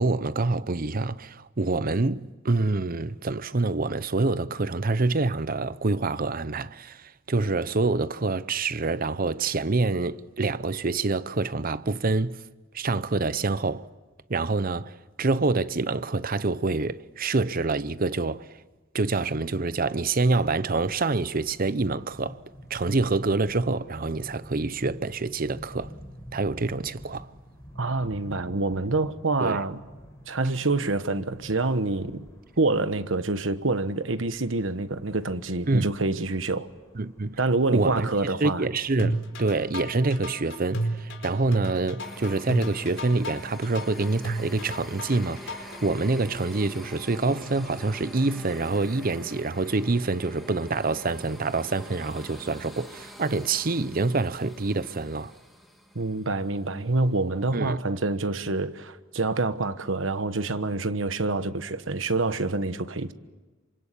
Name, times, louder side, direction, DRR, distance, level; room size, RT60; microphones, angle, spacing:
voice 1, 0.0-12.4 12.7-13.8 14.3-18.5 18.9-22.4 22.7-25.9 26.3-27.3 29.4-29.6 35.7-35.9 37.0-37.4 37.7-38.1 38.4-55.3 57.5-57.8, right 3 dB, 50° right, 0.8 m, -26 dB
sound 1, 20.5-38.3, equal, 15° left, 6.4 m, -48 dB
voice 2, 27.8-29.8 30.3-32.3 32.6-36.7 37.4-38.7 55.9-63.1, right 3 dB, 85° right, 1.3 m, -27 dB
sound 2, 39.0-45.8, right 1 dB, 70° left, 4.6 m, -32 dB
sound 3, 42.0-56.7, equal, ahead, 3.8 m, -45 dB
28.0 x 25.5 x 8.4 m
head